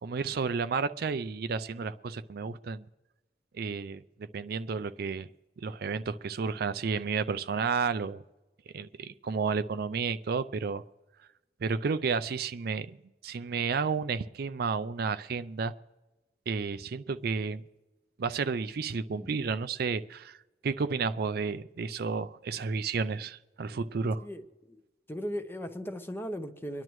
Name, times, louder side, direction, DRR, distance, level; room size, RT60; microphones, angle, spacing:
voice 1, 0.0-2.8 3.5-4.0 4.3-5.3 5.6-8.2 8.7-10.8 11.6-12.9 13.2-15.7 16.5-17.6 18.2-20.4 20.6-24.2, right 5 dB, 60° right, 12 dB, 0.4 m, -31 dB
voice 2, 24.2-24.8 25.1-26.8, equal, 15° left, 9 dB, 0.7 m, -38 dB
25.5 x 10.5 x 3.1 m, 1.1 s
head